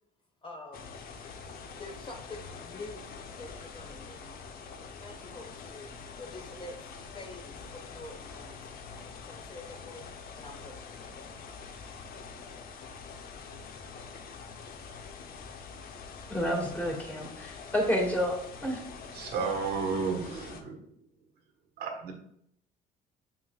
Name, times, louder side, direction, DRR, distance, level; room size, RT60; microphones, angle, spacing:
voice 1, 0.4-0.9 1.8-3.1 3.4-4.3 5.0-5.9 6.2-6.7 7.1-8.6 9.3-10.0 10.3-11.2, left 2 dB, 30° left, 3 dB, 1.3 m, -46 dB
sound 1, 0.7-20.6, left 5 dB, 60° left, 0.8 m, -45 dB
voice 2, 16.3-18.9, equal, 10° left, -1 dB, 2.0 m, -30 dB
voice 3, 19.1-20.9 21.8-22.1, right 5 dB, 75° right, 3 dB, 1.3 m, -32 dB
7.1 x 6.2 x 2.4 m, 0.72 s
cardioid pair, 110°, 17 cm